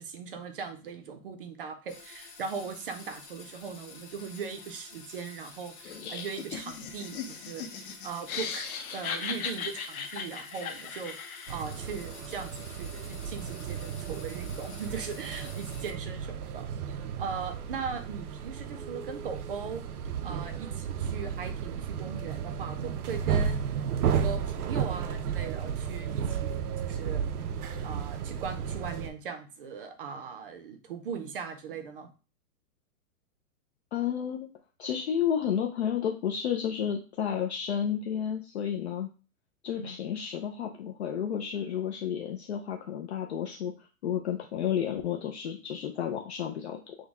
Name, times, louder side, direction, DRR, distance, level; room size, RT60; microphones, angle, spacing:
voice 1, 0.0-16.7 17.2-19.8 20.2-32.1 39.8-40.0, right 6 dB, 40° right, 8 dB, 0.6 m, -39 dB
sound 1, 1.9-15.9, left 4 dB, 25° left, 1.1 m, -49 dB
Laughter, 5.8-11.7, left 6 dB, 75° left, 1.0 m, -38 dB
sound 2, 11.5-29.1, right 7 dB, 80° right, 0.7 m, -33 dB
voice 2, 33.9-34.5 34.8-39.1 39.6-43.7 44.0-47.0, left 9 dB, 50° left, 2 dB, 0.6 m, -31 dB
6.2 x 2.2 x 3.5 m, 0.34 s
hypercardioid pair, 170°, 44 cm